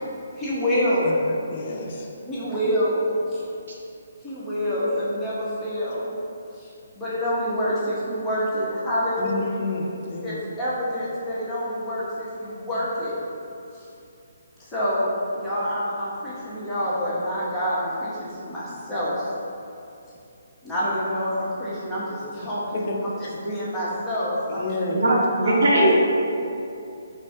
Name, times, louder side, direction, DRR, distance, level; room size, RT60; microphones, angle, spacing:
voice 1, 0.4-1.1 2.2-3.4 4.2-6.1 6.5-9.5 10.2-13.1 13.7-13.9 14.6-15.1 15.3-19.3 20.6-22.8 23.2-24.7 25.4-25.9, equal, 5° left, -11 dB, 1.0 m, -27 dB
voice 2, 1.5-2.1 9.2-10.4 22.7-23.0 24.5-25.2, left 2 dB, 45° left, 0 dB, 0.4 m, -30 dB
voice 3, 24.9-25.9, right 1 dB, 65° right, -3 dB, 0.8 m, -19 dB
4.2 x 3.5 x 2.2 m, 2.6 s
hypercardioid pair, 150°, 0 cm